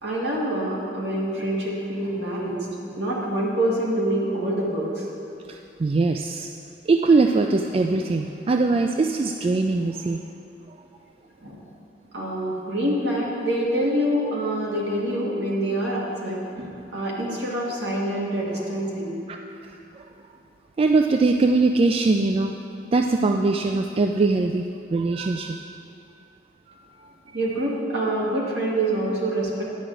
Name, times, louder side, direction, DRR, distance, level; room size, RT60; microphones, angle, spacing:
voice 1, 0.0-5.1 11.4-11.6 12.1-19.2 27.3-29.6, right 1 dB, 65° right, -4 dB, 2.1 m, -26 dB
voice 2, 5.5-6.5 6.9-10.2 19.3-19.4 20.8-22.6 22.9-25.7 26.7-26.8, right 3 dB, 30° right, 4 dB, 0.3 m, -21 dB
10.5 x 5.0 x 7.8 m, 2.7 s
head